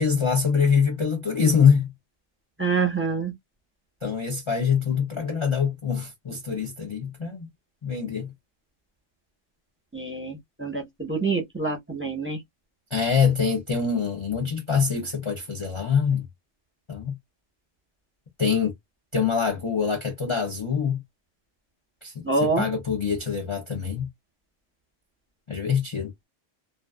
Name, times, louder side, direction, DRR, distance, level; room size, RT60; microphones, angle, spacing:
voice 1, 0.0-1.9 4.0-7.5 7.8-8.3 12.9-16.3 16.9-17.2 18.4-18.7 19.1-21.0 22.0-24.1 25.5-26.1, left 6 dB, 40° left, 0.4 m, -24 dB
voice 2, 2.6-3.3 9.9-12.4 22.2-22.7, right 4 dB, 10° right, 0.7 m, -26 dB
2.4 x 2.3 x 2.2 m
omnidirectional pair, 1.3 m